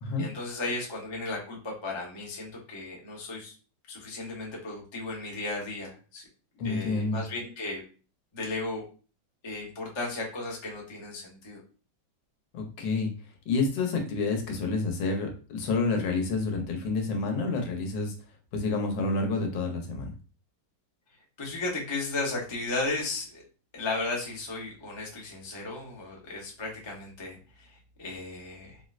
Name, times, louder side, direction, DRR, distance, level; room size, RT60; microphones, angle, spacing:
voice 1, 0.2-3.5 3.9-6.3 6.6-7.8 8.3-8.8 9.4-11.6 21.4-23.4 23.7-28.8, left 2 dB, 45° left, -2 dB, 0.3 m, -35 dB
voice 2, 6.6-7.2 12.5-13.1 13.5-18.1 18.5-20.1, left 3 dB, 85° left, 3 dB, 1.5 m, -29 dB
4.5 x 2.1 x 2.3 m, 0.37 s
omnidirectional pair, 2.0 m